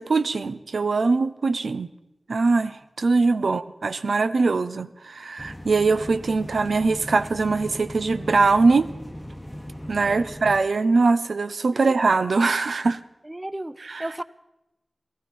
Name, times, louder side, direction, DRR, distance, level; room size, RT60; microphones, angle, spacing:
voice 1, 0.0-1.9 2.3-8.9 9.9-13.0 13.9-14.1, right 3 dB, 90° right, 10 dB, 0.6 m, -22 dB
sound 1, 5.4-10.6, equal, 15° left, 1.0 m, -38 dB
voice 2, 10.1-10.4 11.7-11.8 13.2-14.2, right 1 dB, 20° right, 14 dB, 0.6 m, -35 dB
18.5 x 14.0 x 5.4 m, 0.92 s
wide cardioid pair, 55°, 0 cm